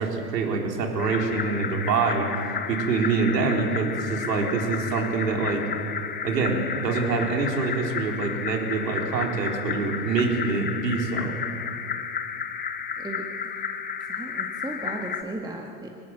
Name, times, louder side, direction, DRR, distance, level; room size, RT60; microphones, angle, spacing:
voice 1, 0.0-2.3 2.7-5.6 6.2-11.4, right 4 dB, 75° right, 1 dB, 4.0 m, -25 dB
sound 1, 1.0-15.2, left 7 dB, 20° left, 1.3 m, -32 dB
voice 2, 14.1-15.9, right 2 dB, 10° right, 1 dB, 1.8 m, -36 dB
25.0 x 19.5 x 7.9 m, 2.6 s
hypercardioid pair, 100°, 50 cm